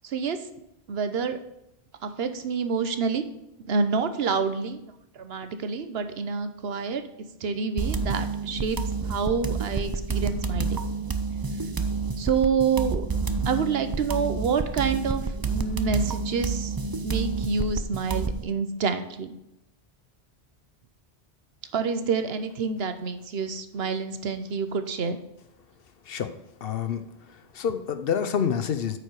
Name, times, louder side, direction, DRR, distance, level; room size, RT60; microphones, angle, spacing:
voice 1, 0.0-0.4 0.9-1.4 2.0-3.2 3.7-4.8 5.1-7.0 7.4-8.8 9.1-10.8 12.2-13.0 13.5-16.7 17.0-19.3 21.7-25.2, right 5 dB, 75° right, 9 dB, 1.0 m, -27 dB
sound 1, 7.8-18.4, right 4 dB, 30° right, 0.4 m, -29 dB
voice 2, 26.6-27.0 27.5-29.0, left 8 dB, 65° left, 10 dB, 0.9 m, -27 dB
8.8 x 5.0 x 4.7 m, 0.86 s
omnidirectional pair, 1.1 m